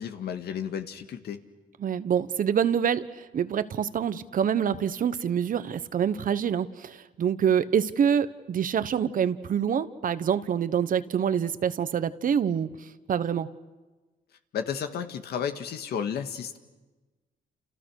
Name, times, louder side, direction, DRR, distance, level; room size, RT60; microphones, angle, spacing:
voice 1, 0.0-1.4 14.5-16.6, left 8 dB, 80° left, 7 dB, 2.0 m, -32 dB
voice 2, 1.8-12.7 13.1-13.5, right 8 dB, 55° right, 13 dB, 1.2 m, -26 dB
29.5 x 29.0 x 6.5 m, 1.2 s
cardioid pair, 95°, 17 cm